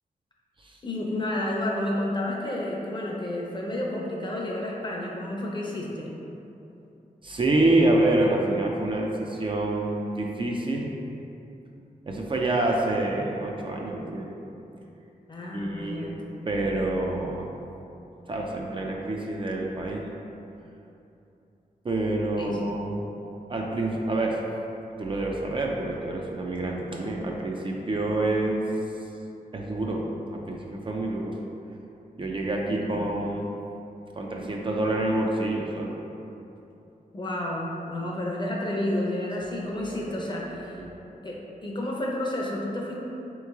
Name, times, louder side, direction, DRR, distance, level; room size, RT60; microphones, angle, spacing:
voice 1, 0.8-6.1 15.3-16.2 22.4-22.8 32.7-33.0 37.1-40.8 41.2-43.0, left 1 dB, 30° left, -3 dB, 0.6 m, -31 dB
voice 2, 7.2-10.9 12.1-14.3 15.5-16.1 16.5-17.5 18.3-20.0 21.8-23.1 23.5-24.4 25.0-28.6 29.5-30.1 30.3-31.4 32.2-33.5 34.1-36.0 39.8-40.3 40.7-40.9, right 2 dB, 35° right, -1 dB, 0.4 m, -27 dB
3.6 x 3.1 x 3.5 m, 2.8 s
wide cardioid pair, 90°, 15 cm